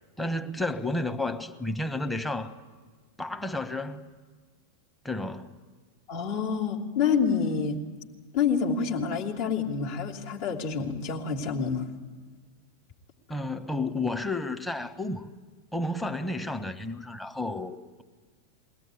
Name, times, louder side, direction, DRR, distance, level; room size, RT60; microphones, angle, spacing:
voice 1, 0.2-2.5 3.2-4.1 5.0-5.6 13.3-15.3 15.7-18.0, left 2 dB, 5° left, 7 dB, 1.2 m, -31 dB
voice 2, 6.1-7.8 8.3-11.9, left 6 dB, 55° left, -1 dB, 3.1 m, -27 dB
22.5 x 18.0 x 9.7 m, 1.4 s
figure-of-eight pair, 90°, 0 cm